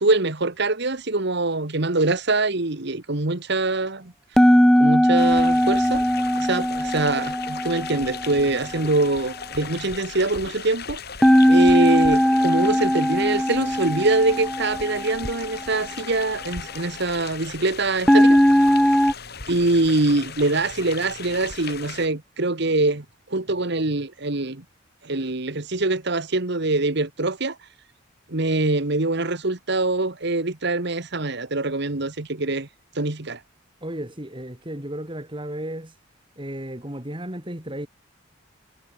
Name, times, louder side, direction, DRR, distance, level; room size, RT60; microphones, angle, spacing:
voice 1, 0.0-4.1 4.8-6.0 6.4-11.0 11.5-18.4 19.5-24.6 25.0-27.6 28.3-32.7 32.9-33.4, right 2 dB, 55° right, 1.6 m, -24 dB
sound 1, 4.4-8.5 11.2-15.4 18.1-19.1, equal, ahead, 0.3 m, -19 dB
sound 2, 5.2-22.1, left 6 dB, 50° left, 7.7 m, -37 dB
voice 2, 8.4-8.9 33.8-35.9 36.4-37.9, right 1 dB, 25° right, 3.5 m, -34 dB
head